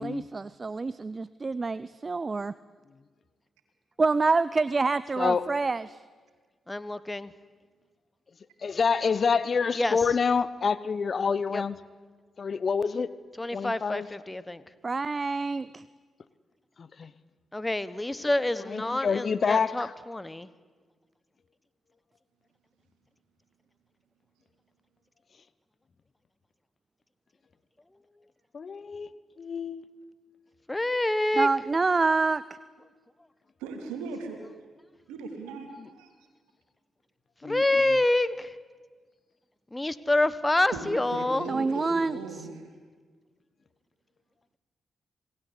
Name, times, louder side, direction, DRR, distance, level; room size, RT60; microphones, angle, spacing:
voice 1, 0.0-2.5 4.0-6.0 14.8-15.8 31.4-32.4 41.5-42.2, right 3 dB, 40° right, 18 dB, 0.6 m, -27 dB
voice 2, 5.2-5.5 8.6-11.8 12.4-13.1 13.5-14.1 16.8-17.1 18.7-19.9 28.5-29.8 37.4-37.6, left 5 dB, 55° left, 17 dB, 1.0 m, -27 dB
voice 3, 6.7-7.3 9.7-10.0 11.5-11.6 13.4-14.6 17.5-20.5 30.7-31.5 37.4-38.5 39.7-41.5, left 2 dB, 20° left, 16 dB, 1.4 m, -27 dB
voice 4, 33.6-34.5 35.1-36.1 40.7-42.6, right 4 dB, 85° right, 5 dB, 3.1 m, -38 dB
27.5 x 18.5 x 8.5 m, 1.5 s
hypercardioid pair, 40°, 0 cm